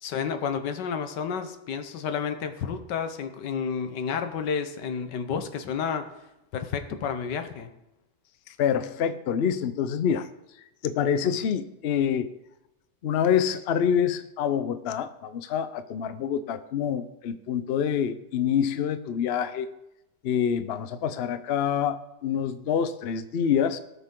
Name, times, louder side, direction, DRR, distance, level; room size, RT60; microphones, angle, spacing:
voice 1, 0.0-6.1 6.5-7.7, left 6 dB, 90° left, 8 dB, 1.6 m, -31 dB
voice 2, 8.5-10.3 10.8-12.3 13.0-19.7 20.2-23.8, left 8 dB, 55° left, 11 dB, 0.6 m, -26 dB
17.5 x 6.7 x 3.8 m, 0.92 s
omnidirectional pair, 1.8 m